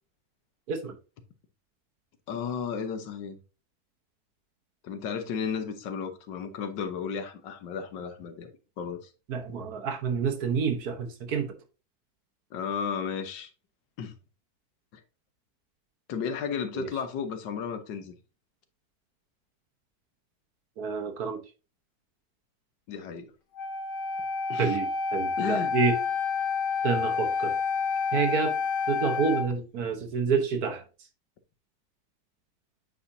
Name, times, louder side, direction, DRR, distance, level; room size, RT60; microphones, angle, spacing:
voice 1, 2.3-3.4 4.8-8.5 8.8-9.1 12.5-13.5 14.0-14.2 14.9-15.0 16.1-18.1 22.9-23.3 24.5-24.8 25.4-25.7, left 6 dB, 80° left, 1.6 m, -33 dB
voice 2, 9.3-11.6 16.7-16.9 20.8-21.4 24.6-26.0 26.8-27.6 28.1-28.6 28.9-30.8, right 5 dB, 60° right, 1.4 m, -28 dB
Wind instrument woodwind instrument, 23.5-29.5, left 5 dB, 60° left, 2.3 m, -29 dB
8.4 x 4.9 x 2.6 m
omnidirectional pair, 1.9 m